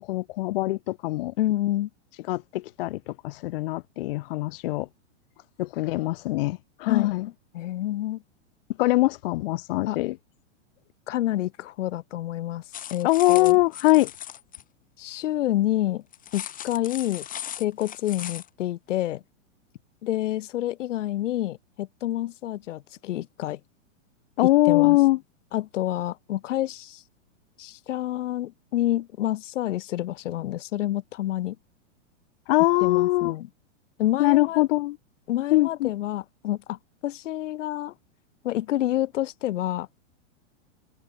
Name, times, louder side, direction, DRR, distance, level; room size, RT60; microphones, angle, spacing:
voice 1, 0.0-1.3 2.3-4.9 5.6-7.3 8.8-10.2 13.0-14.1 24.4-25.2 32.5-33.4 34.2-35.0 35.5-36.0, left 18 dB, 50° left, 0.5 m, -22 dB
voice 2, 1.4-1.9 6.9-7.1 7.5-8.2 9.9-10.0 11.1-12.6 12.9-13.6 15.0-16.0 16.3-17.3 17.6-19.2 20.0-23.6 24.7-25.0 25.5-27.0 27.6-31.6 32.8-33.5 34.0-34.6 35.3-37.9 38.4-39.9, left 14 dB, 75° left, 0.8 m, -28 dB
sound 1, 12.7-14.6 16.1-18.5, left 10 dB, 20° left, 2.7 m, -38 dB
hypercardioid pair, 135°, 37 cm